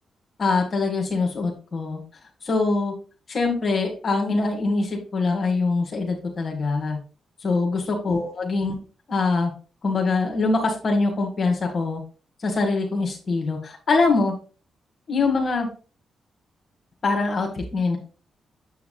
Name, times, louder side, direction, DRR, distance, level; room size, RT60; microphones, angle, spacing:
voice 1, 0.4-2.0 2.4-2.9 3.3-7.0 7.4-8.7 9.1-9.5 9.8-12.0 12.4-14.3 15.1-15.7 17.0-18.0, left 3 dB, 55° left, 2 dB, 1.5 m, -23 dB
7.7 x 5.7 x 2.2 m, 0.36 s
hypercardioid pair, 45°, 0 cm